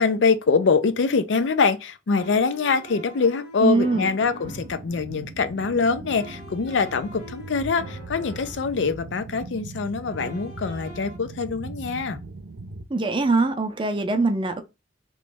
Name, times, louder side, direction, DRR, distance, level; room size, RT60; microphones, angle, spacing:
voice 1, 0.0-12.2, left 5 dB, 75° left, 0.4 m, -24 dB
sound 1, 0.6-0.7 2.1-4.8 6.1-8.8 10.1-11.2, right 1 dB, 60° left, 1.5 m, -44 dB
voice 2, 3.6-4.1 12.9-14.6, right 3 dB, 25° right, 0.5 m, -22 dB
sound 2, 4.4-12.8, right 3 dB, 80° right, 0.6 m, -39 dB
3.0 x 3.0 x 3.4 m
head